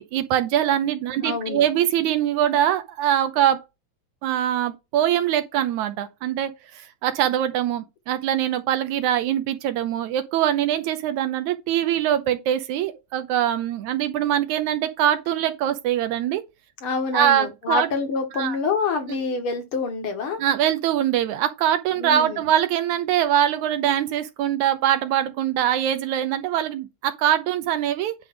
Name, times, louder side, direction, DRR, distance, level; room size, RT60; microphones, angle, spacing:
voice 1, 0.0-3.6 4.2-16.4 17.1-17.9 18.3-18.6 19.1-19.2 20.4-28.1, right 11 dB, 75° right, 2.0 m, -23 dB
voice 2, 1.2-1.7 16.8-20.4 22.0-22.4, left 4 dB, 50° left, 2.1 m, -27 dB
10.0 x 3.5 x 6.2 m
omnidirectional pair, 3.8 m